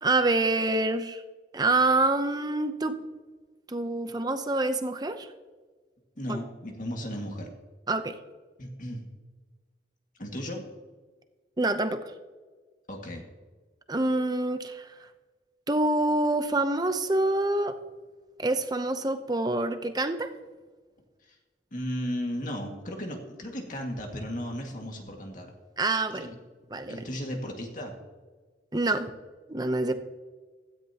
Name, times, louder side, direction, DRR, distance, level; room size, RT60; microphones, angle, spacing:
voice 1, 0.0-1.2 1.5-3.0 3.7-5.3 6.3-6.4 7.9-8.2 11.6-12.0 13.9-14.9 15.7-17.8 18.4-20.3 25.8-26.4 26.7-27.0 28.7-29.1 29.5-29.9, right 2 dB, 20° right, 9 dB, 0.7 m, -26 dB
voice 2, 6.2-7.5 8.6-9.0 10.2-10.6 12.9-13.2 21.2-21.4 21.7-25.5 26.1-26.4 26.9-27.9 29.9-30.0, equal, 45° left, 1 dB, 2.0 m, -35 dB
16.0 x 13.5 x 2.9 m, 1.4 s
head